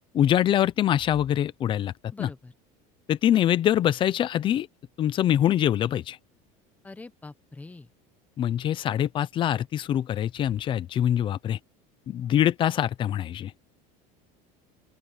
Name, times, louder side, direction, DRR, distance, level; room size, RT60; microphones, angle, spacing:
voice 1, 0.1-1.9 2.2-2.3 3.1-4.7 5.0-6.2 8.4-11.6 12.1-13.5, left 11 dB, 25° left, 0.7 m, -24 dB
voice 2, 2.1-2.5 6.8-7.9, left 3 dB, 10° left, 1.2 m, -43 dB
open air
cardioid pair, 170°, 18 cm